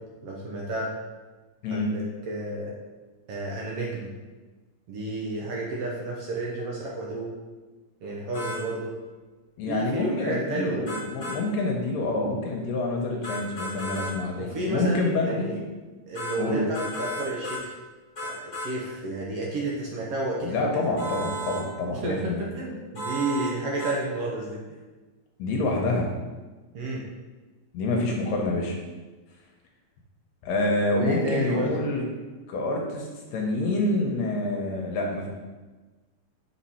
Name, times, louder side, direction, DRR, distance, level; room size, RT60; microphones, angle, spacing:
voice 1, 0.2-0.9 1.7-2.7 3.3-4.1 4.9-7.3 8.0-8.9 9.7-10.8 14.4-15.6 16.1-17.7 18.2-20.7 21.9-24.6 26.7-27.0 30.9-31.7, right 2 dB, 70° right, -3 dB, 1.5 m, -31 dB
voice 2, 1.6-1.9 9.6-15.5 16.4-16.8 20.4-22.4 25.4-26.1 27.7-28.8 30.4-32.0 32.5-35.3, left 2 dB, 75° left, 0 dB, 1.8 m, -27 dB
sound 1, 8.3-8.6 10.9-11.4 13.2-14.1 16.2-16.4 16.7-17.6 18.2-18.7 21.0-21.6 23.0-23.5 23.8-23.9, equal, 35° left, 1.3 m, -33 dB
5.8 x 4.2 x 4.2 m, 1.3 s
omnidirectional pair, 3.5 m